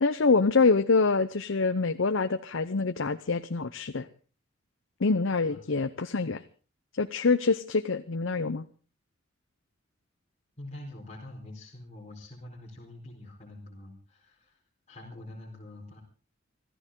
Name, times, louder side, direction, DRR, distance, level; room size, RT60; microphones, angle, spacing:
voice 1, 0.0-4.1 5.0-6.4 7.0-8.7, left 4 dB, 80° left, 10 dB, 0.8 m, -25 dB
voice 2, 10.6-14.6 14.9-16.0, left 1 dB, 35° left, -3 dB, 4.3 m, -45 dB
25.5 x 14.5 x 3.8 m, 0.38 s
head